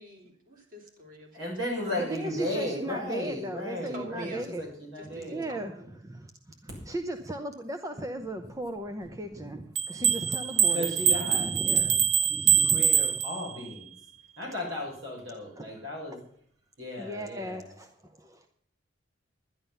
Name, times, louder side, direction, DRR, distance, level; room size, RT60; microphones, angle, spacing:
voice 1, 0.0-1.4 1.8-2.7 3.0-3.1 3.7-4.4 5.0-5.9, equal, 45° right, 1 dB, 3.2 m, -46 dB
voice 2, 1.3-5.5 10.7-11.9 12.3-13.9 14.4-16.2 16.8-17.7, left 1 dB, 80° right, -1 dB, 6.2 m, -35 dB
voice 3, 1.9-4.6 5.0-10.9 11.3-12.8 15.6-15.8 16.1-16.2 17.0-18.5, right 1 dB, 15° right, 6 dB, 0.7 m, -37 dB
sound 1, 9.7-13.7, right 8 dB, 60° right, 0.5 m, -24 dB
11.0 x 11.0 x 5.6 m, 0.63 s
head